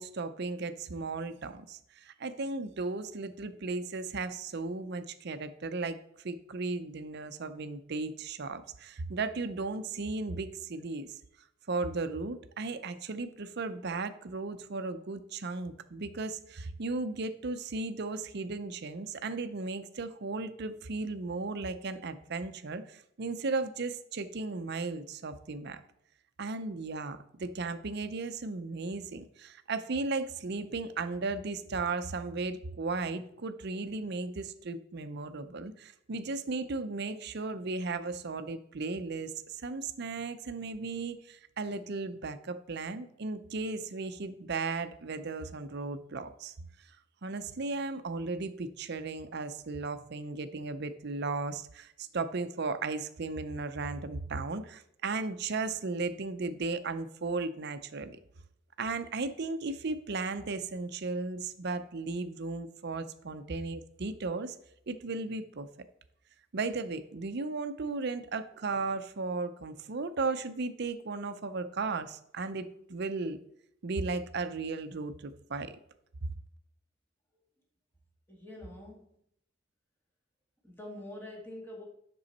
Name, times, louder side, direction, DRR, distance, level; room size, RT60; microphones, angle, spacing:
voice 1, 0.0-6.0 6.2-11.2 11.7-25.8 26.4-46.5 47.2-58.2 58.8-64.6 64.9-65.7 66.5-72.6 72.9-73.4 73.8-75.8, right 3 dB, 55° right, 11 dB, 0.6 m, -35 dB
voice 2, 78.3-79.1 80.6-81.9, left 1 dB, 10° left, -1 dB, 1.7 m, -45 dB
7.8 x 6.2 x 4.2 m, 0.73 s
head